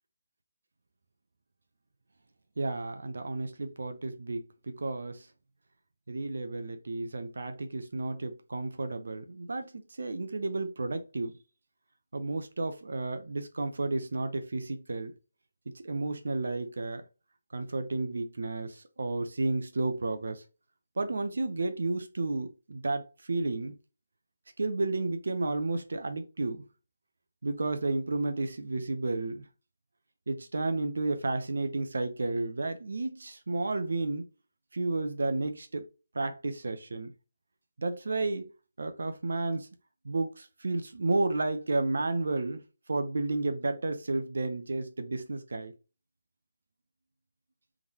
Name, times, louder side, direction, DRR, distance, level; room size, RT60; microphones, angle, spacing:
voice 1, 2.6-5.3 6.1-11.3 12.1-15.1 15.7-17.0 17.5-20.4 21.0-23.8 24.6-26.6 27.4-29.4 30.3-34.2 34.7-35.8 36.1-37.1 37.8-38.5 38.8-39.7 40.0-42.6 42.9-45.7, right 2 dB, 70° right, 0.8 m, -32 dB
3.7 x 3.6 x 3.0 m
figure-of-eight pair, 165°, 0 cm